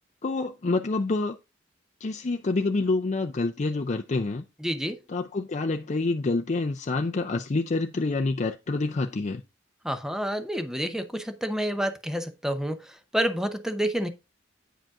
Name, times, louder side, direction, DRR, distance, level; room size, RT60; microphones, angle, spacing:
voice 1, 0.2-1.4 2.0-4.4 5.1-9.4, left 3 dB, 40° left, 0.5 m, -27 dB
voice 2, 4.6-5.0 9.8-14.1, equal, 5° right, 0.7 m, -29 dB
9.0 x 5.0 x 3.6 m
head